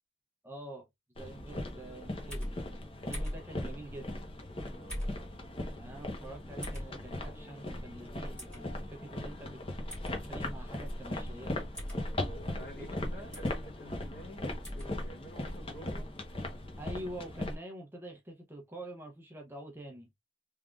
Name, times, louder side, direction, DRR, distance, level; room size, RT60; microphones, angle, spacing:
voice 1, 0.4-0.9 1.2-2.7 3.1-4.1 5.8-9.6 10.2-11.7 16.8-20.1, right 1 dB, 10° right, 0.7 m, -46 dB
sound 1, 1.2-17.6, left 1 dB, 30° left, 1.0 m, -39 dB
sound 2, 2.3-2.5 3.1-3.4 4.9-5.2 6.6-6.9 8.4-8.6 9.9-10.1 11.7-12.0 13.3-13.6 14.6-14.9, equal, 5° left, 2.1 m, -38 dB
voice 2, 4.7-5.1 12.2-16.1, equal, 60° left, 1.9 m, -50 dB
3.6 x 3.4 x 2.4 m
head